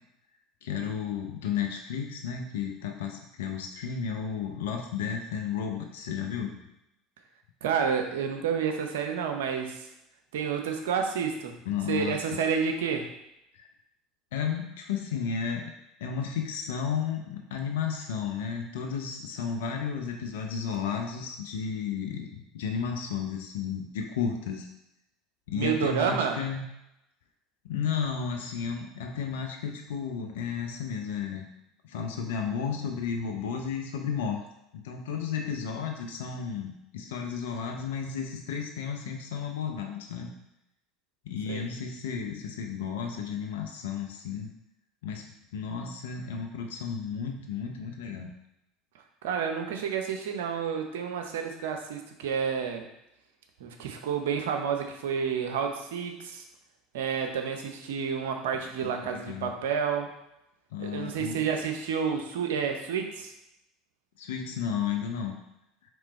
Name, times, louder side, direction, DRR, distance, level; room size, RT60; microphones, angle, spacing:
voice 1, 0.6-6.6 11.7-12.2 13.5-13.7 14.3-15.7 16.0-24.7 25.5-26.6 27.6-31.4 31.9-34.4 34.7-40.3 41.2-44.5 45.0-45.2 45.5-48.3 58.8-59.6 60.7-61.4 64.2-65.3, left 7 dB, 75° left, 2 dB, 0.6 m, -33 dB
voice 2, 7.6-9.9 10.3-11.6 11.9-13.1 25.5-26.4 41.5-41.7 49.2-52.9 53.6-56.4 56.9-60.1 60.8-63.3, right 6 dB, 75° right, 4 dB, 0.6 m, -30 dB
3.8 x 3.1 x 4.1 m, 0.86 s
hypercardioid pair, 75°, 0 cm